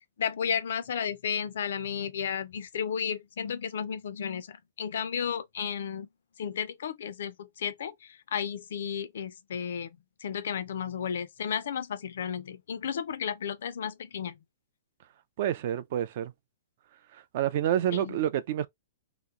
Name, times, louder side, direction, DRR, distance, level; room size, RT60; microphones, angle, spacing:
voice 1, 0.2-6.1 6.4-14.3 18.0-18.2, left 7 dB, 65° left, 0.4 m, -33 dB
voice 2, 15.4-16.3 17.1-18.7, right 11 dB, 40° right, 0.3 m, -28 dB
2.9 x 2.0 x 3.5 m
hypercardioid pair, 175°, 0 cm